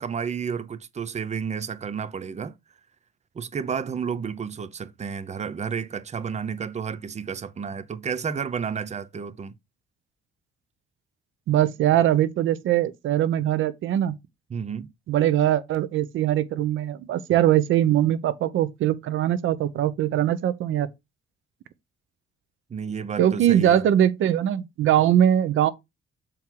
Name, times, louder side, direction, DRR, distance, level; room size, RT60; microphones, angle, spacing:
voice 1, 0.0-2.6 3.3-9.5 14.5-14.9 22.7-23.8, right 6 dB, 35° right, 0.8 m, -31 dB
voice 2, 11.5-14.1 15.1-20.9 23.2-25.7, right 11 dB, 80° right, 1.0 m, -21 dB
7.3 x 4.5 x 3.9 m
cardioid pair, 90°, 20 cm